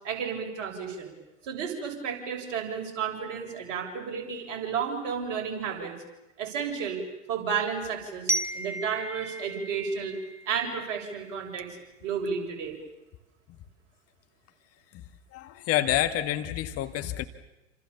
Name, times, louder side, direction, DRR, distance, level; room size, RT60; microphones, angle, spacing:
voice 1, 0.0-1.1 1.4-5.9 6.4-7.0 7.3-10.2 10.5-11.7 12.0-12.8, right 6 dB, 50° right, 2 dB, 7.3 m, -32 dB
Glockenspiel, 8.3-11.1, right 1 dB, 5° right, 1.5 m, -34 dB
voice 2, 15.3-17.2, left 13 dB, 40° left, 9 dB, 1.9 m, -28 dB
29.0 x 27.0 x 7.2 m, 0.99 s
figure-of-eight pair, 85°, 37 cm